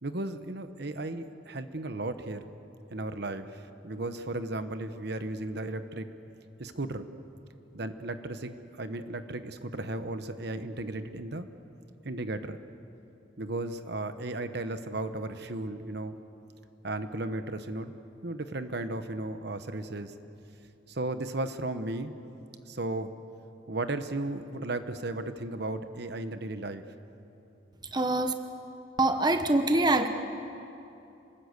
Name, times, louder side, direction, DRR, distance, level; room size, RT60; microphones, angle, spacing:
voice 1, 0.0-2.5 2.9-6.1 6.6-7.1 7.7-11.5 12.0-12.6 13.4-16.2 16.8-17.9 18.2-20.1 20.9-22.1 22.7-23.1 23.7-26.8, right 2 dB, 55° right, 9 dB, 1.1 m, -35 dB
voice 2, 27.9-28.3 29.0-30.1, right 2 dB, 20° right, 7 dB, 0.9 m, -24 dB
28.0 x 20.0 x 8.2 m, 2.8 s
head